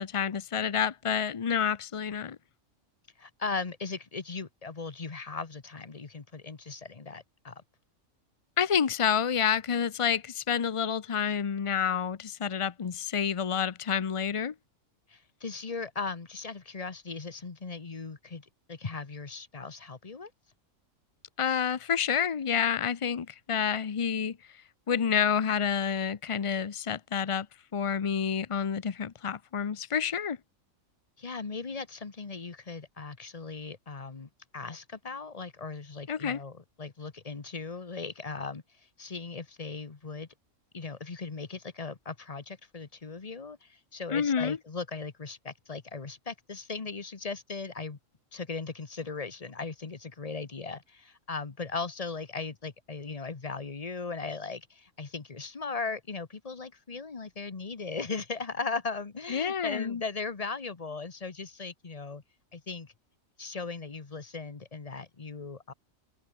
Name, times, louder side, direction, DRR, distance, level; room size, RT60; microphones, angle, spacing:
voice 1, 0.0-2.4 8.6-14.5 21.4-24.4 24.9-27.5 27.7-30.4 36.1-36.4 44.1-44.6 59.3-60.0, left 7 dB, 45° left, 0.4 m, -28 dB
voice 2, 3.2-7.6 15.1-20.3 31.2-38.6 39.0-40.3 40.7-48.0 48.3-62.2 62.5-62.9 63.4-65.7, left 4 dB, 30° left, 1.2 m, -38 dB
omnidirectional pair, 1.4 m